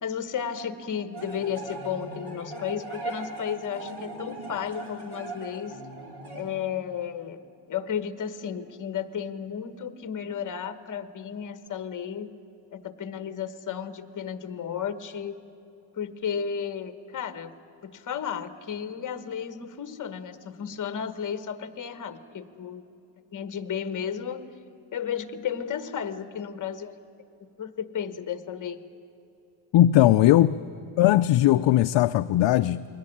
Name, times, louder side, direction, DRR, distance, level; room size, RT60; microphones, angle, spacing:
voice 1, 0.0-5.8 6.3-7.4 7.7-12.4 12.7-15.4 15.9-17.5 17.8-22.8 23.3-24.5 24.9-27.0 27.6-28.8, left 8 dB, 40° left, 12 dB, 1.1 m, -33 dB
sound 1, 1.1-6.4, right 2 dB, 50° right, 4.3 m, -39 dB
voice 2, 29.7-30.6 31.0-32.8, left 13 dB, 60° left, 10 dB, 0.5 m, -19 dB
22.5 x 18.0 x 9.9 m, 2.9 s
wide cardioid pair, 165°, 49 cm